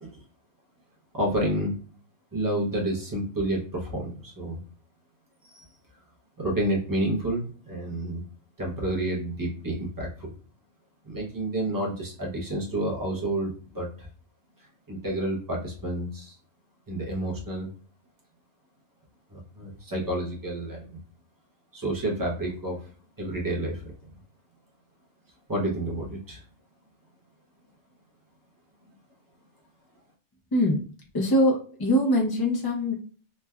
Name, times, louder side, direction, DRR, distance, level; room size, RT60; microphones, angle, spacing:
voice 1, 1.1-1.8 2.3-4.6 5.4-5.7 6.4-8.2 8.6-10.3 11.1-14.1 14.9-16.3 16.9-17.7 19.3-21.0 21.7-22.9 23.2-23.9 25.5-26.4, right 1 dB, 30° right, -2 dB, 0.4 m, -30 dB
voice 2, 30.5-30.8 31.1-33.0, equal, 30° left, -3 dB, 0.5 m, -23 dB
3.2 x 2.2 x 2.2 m, 0.42 s
omnidirectional pair, 1.3 m